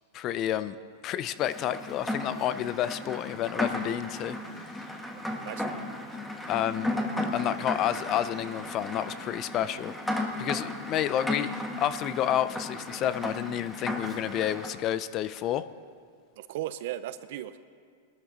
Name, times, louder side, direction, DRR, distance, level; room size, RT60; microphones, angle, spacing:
voice 1, 0.1-0.8 1.0-4.8 6.5-6.9 7.3-10.0 10.4-15.6, left 11 dB, 35° left, 14 dB, 0.5 m, -30 dB
Rain, 1.4-14.7, left 1 dB, 5° left, 1.4 m, -35 dB
voice 2, 5.1-5.7 16.4-17.6, right 13 dB, 65° right, 13 dB, 0.6 m, -37 dB
21.0 x 12.5 x 3.9 m, 2.1 s
hypercardioid pair, 135°, 0 cm